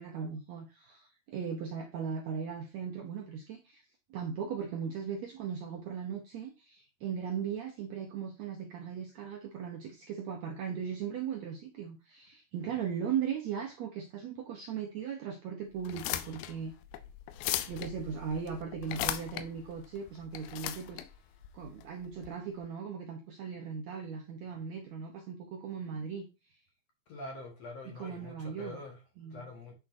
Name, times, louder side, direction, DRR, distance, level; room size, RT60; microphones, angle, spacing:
voice 1, 0.0-3.8 4.1-16.7 17.7-21.0 21.5-26.2 27.9-28.8 29.2-29.5, right 7 dB, 75° right, 1.7 m, -38 dB
sound 1, 15.8-22.3, left 13 dB, 90° left, 2.5 m, -38 dB
voice 2, 27.1-29.0 29.3-29.7, left 2 dB, 60° left, 2.0 m, -45 dB
8.5 x 6.3 x 2.6 m
omnidirectional pair, 4.2 m